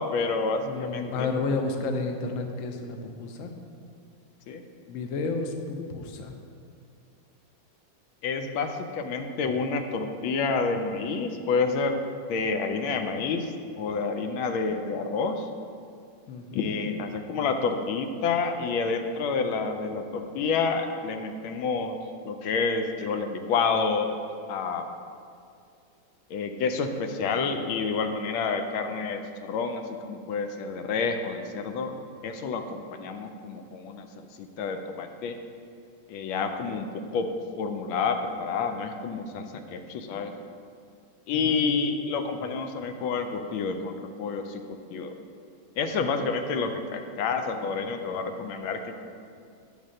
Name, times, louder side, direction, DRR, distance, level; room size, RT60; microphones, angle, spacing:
voice 1, 0.0-1.3 4.5-4.6 5.8-5.9 8.2-12.0 12.3-15.5 16.5-22.0 22.2-24.2 24.5-24.9 26.3-31.9 32.2-34.1 34.4-35.4 36.1-37.3 37.6-40.3 41.3-44.6 44.9-45.1 45.8-49.1, left 4 dB, 85° left, 6 dB, 1.4 m, -29 dB
voice 2, 0.6-3.5 4.9-6.4 16.3-16.7 41.3-42.0 46.0-46.1, left 3 dB, 70° left, 4 dB, 0.7 m, -32 dB
8.8 x 3.4 x 6.3 m, 2.4 s
omnidirectional pair, 2.1 m